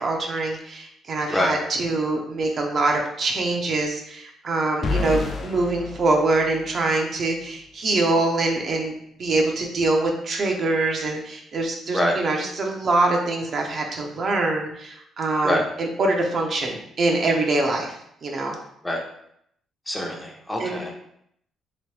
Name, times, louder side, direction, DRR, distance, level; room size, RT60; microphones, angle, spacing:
voice 1, 0.0-8.9 9.2-17.9 18.2-18.6 20.6-20.8, right 2 dB, 50° right, 1 dB, 0.7 m, -24 dB
sound 1, 4.8-7.0, left 4 dB, 50° left, 0.4 m, -29 dB
voice 2, 19.9-20.9, equal, 10° left, 0 dB, 0.8 m, -24 dB
3.2 x 3.0 x 3.3 m, 0.72 s
cardioid pair, 75°, 0 cm